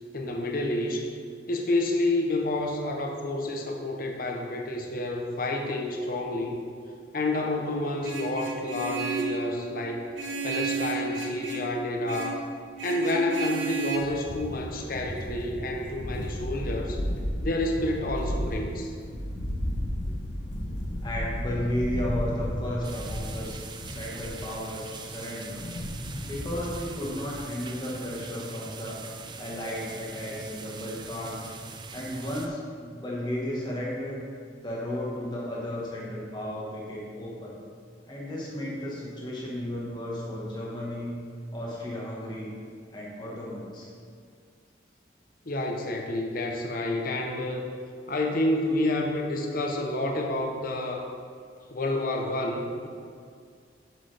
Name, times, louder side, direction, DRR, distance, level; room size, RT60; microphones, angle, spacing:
voice 1, 0.1-1.1 1.5-6.6 7.1-10.0 10.4-12.4 12.8-17.0 17.4-18.9 45.4-47.7 48.1-51.1 51.7-52.9, left 1 dB, 50° left, 1 dB, 0.8 m, -29 dB
Vehicle horn car horn honking, 8.0-9.4 10.1-11.7 12.1-12.4 12.8-14.0, right 4 dB, 90° right, 1.1 m, -32 dB
sound 1, 14.0-27.4, equal, 85° left, 1.0 m, -34 dB
voice 2, 21.0-25.7 26.2-29.0 29.4-31.5 31.9-34.2 34.6-37.6 38.1-41.2 41.5-42.5 42.9-43.9, left 1 dB, 25° left, -5 dB, 1.5 m, -34 dB
sound 2, 22.8-32.5, right 4 dB, 25° right, 0.4 m, -42 dB
7.6 x 6.7 x 3.4 m, 2.1 s
head